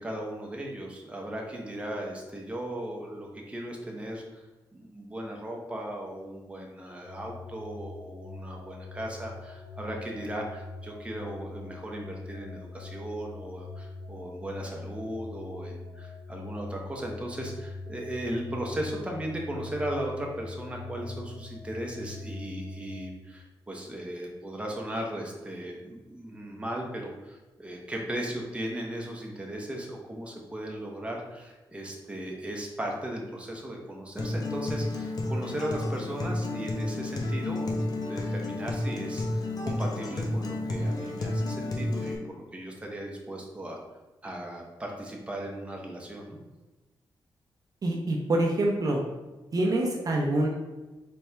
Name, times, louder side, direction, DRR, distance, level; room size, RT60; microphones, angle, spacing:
voice 1, 0.0-4.5 4.7-43.8 44.2-46.4, right 1 dB, 15° right, -1 dB, 0.8 m, -37 dB
sound 1, 7.0-23.1, left 3 dB, 85° left, 0.8 m, -43 dB
Acoustic guitar, 34.2-42.1, left 2 dB, 50° left, 0.7 m, -31 dB
voice 2, 47.8-49.0 49.5-50.5, right 1 dB, 45° right, 0 dB, 0.7 m, -25 dB
4.3 x 3.4 x 3.3 m, 1.1 s
wide cardioid pair, 110°, 8 cm